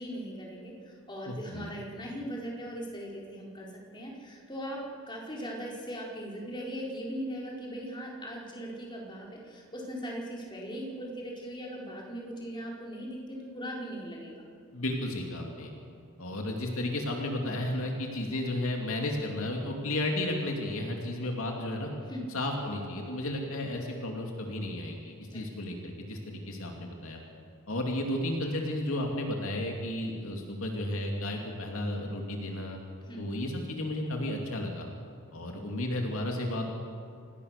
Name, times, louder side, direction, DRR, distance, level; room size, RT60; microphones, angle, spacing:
voice 1, 0.0-14.3 22.0-22.2 25.3-25.5 33.0-33.2, equal, 20° left, -3 dB, 4.5 m, -39 dB
voice 2, 1.3-1.7 14.7-15.7 16.2-21.9 22.3-27.2 27.7-32.8 33.2-34.9 35.3-36.6, left 1 dB, 65° left, 1 dB, 2.8 m, -33 dB
27.5 x 19.0 x 6.8 m, 2.3 s
head